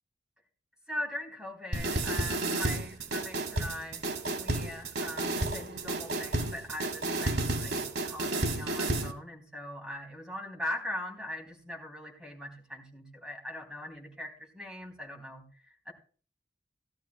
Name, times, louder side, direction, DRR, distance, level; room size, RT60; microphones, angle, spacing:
voice 1, 0.9-15.9, left 1 dB, 5° right, -1 dB, 3.7 m, -41 dB
sound 1, 1.7-9.1, right 2 dB, 65° right, 1.6 m, -31 dB
17.0 x 12.5 x 2.3 m, 0.41 s
head